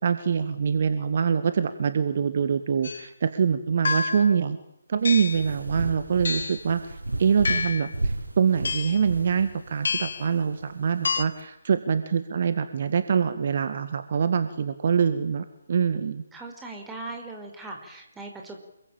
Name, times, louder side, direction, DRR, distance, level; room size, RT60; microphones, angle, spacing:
voice 1, 0.0-4.6 4.9-16.2, right 6 dB, 40° right, 10 dB, 1.9 m, -25 dB
sound 1, 2.8-3.1 3.8-4.4 5.0-5.5 6.2-6.7 7.4-7.9 8.6-9.0 9.8-10.3 11.0-11.2, left 4 dB, 55° left, 1.9 m, -28 dB
sound 2, 5.0-11.4, right 2 dB, 70° right, 7.4 m, -34 dB
voice 2, 16.3-18.6, right 2 dB, 5° right, 1 dB, 5.1 m, -39 dB
28.0 x 23.0 x 9.0 m, 0.80 s
figure-of-eight pair, 145°, 0 cm